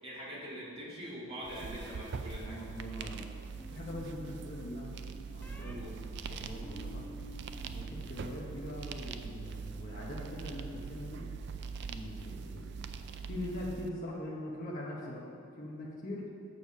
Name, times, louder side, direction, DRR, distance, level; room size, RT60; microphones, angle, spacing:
voice 1, 0.0-2.6 5.7-6.0, equal, 30° right, -7 dB, 2.0 m, -43 dB
sound 1, 1.4-13.9, right 5 dB, 55° right, 0.4 m, -42 dB
voice 2, 2.4-3.2 3.7-5.0 5.3-5.8 6.3-7.1 7.7-11.2 11.9-12.9 13.3-15.2 15.6-16.3, left 1 dB, 40° left, -5 dB, 1.0 m, -42 dB
sound 2, 3.6-4.4 5.4-5.7 6.3-7.9 8.1-8.7, equal, 10° left, 0.6 m, -51 dB
7.0 x 6.8 x 5.4 m, 2.5 s
head